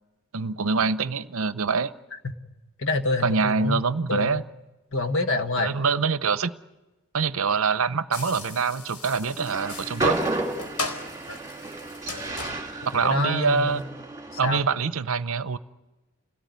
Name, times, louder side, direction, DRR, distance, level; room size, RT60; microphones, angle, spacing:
voice 1, 0.3-1.9 3.2-4.4 5.6-6.5 7.1-10.2 12.9-13.8 14.4-15.6, right 5 dB, 65° right, 14 dB, 0.7 m, -25 dB
voice 2, 2.8-3.8 4.1-4.4 4.9-5.7 11.3-11.4 12.9-13.8 14.4-14.7, left 2 dB, 60° left, 6 dB, 1.6 m, -26 dB
sound 1, 8.1-13.8, left 3 dB, 85° left, 4.2 m, -38 dB
Train, 9.4-14.7, right 2 dB, 15° right, 2.4 m, -32 dB
27.5 x 17.5 x 9.5 m, 1.2 s
head